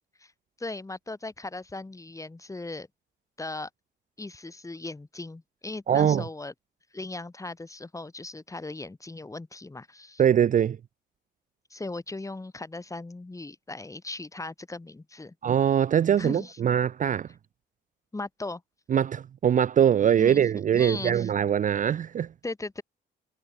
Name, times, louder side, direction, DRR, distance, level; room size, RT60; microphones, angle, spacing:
voice 1, 0.6-2.9 3.4-3.7 4.2-6.5 6.9-10.2 11.7-15.3 16.2-16.6 18.1-18.6 20.2-20.4 20.8-21.3 22.4-22.8, left 2 dB, 15° left, 2.0 m, -38 dB
voice 2, 5.9-6.2 10.2-10.8 15.4-17.3 18.9-22.3, right 9 dB, 40° right, 0.5 m, -22 dB
cardioid pair, 90°, 20 cm